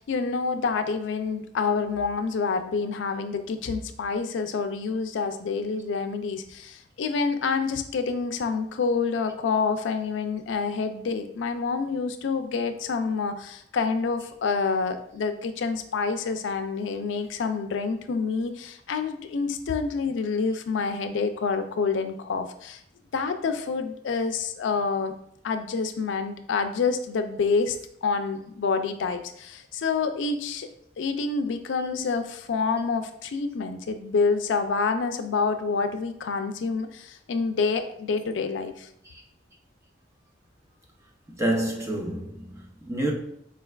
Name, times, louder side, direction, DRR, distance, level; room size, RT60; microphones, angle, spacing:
voice 1, 0.0-22.8 23.1-25.1 25.4-27.8 28.0-30.7 31.0-38.9, left 4 dB, 85° left, 0.4 m, -27 dB
voice 2, 41.3-43.1, right 1 dB, 15° right, 0.6 m, -28 dB
4.4 x 3.3 x 2.3 m
head